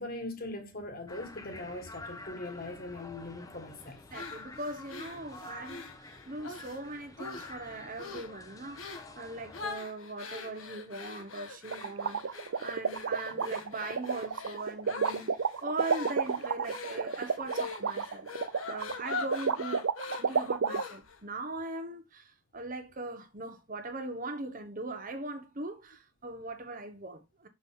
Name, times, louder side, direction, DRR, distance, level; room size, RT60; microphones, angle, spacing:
voice 1, 0.0-4.0, left 2 dB, 45° left, 1.8 m, -40 dB
sound 1, 1.1-9.8, left 2 dB, 15° left, 0.9 m, -48 dB
sound 2, 4.1-6.8 7.2-7.7 8.0-8.3 8.8-9.1 9.5-21.2, left 4 dB, 80° left, 1.5 m, -43 dB
voice 2, 4.1-18.3 18.7-19.8 20.1-27.5, right 2 dB, 40° right, 1.1 m, -40 dB
sound 3, 11.7-20.8, right 6 dB, 70° right, 0.5 m, -30 dB
6.1 x 6.0 x 3.6 m
head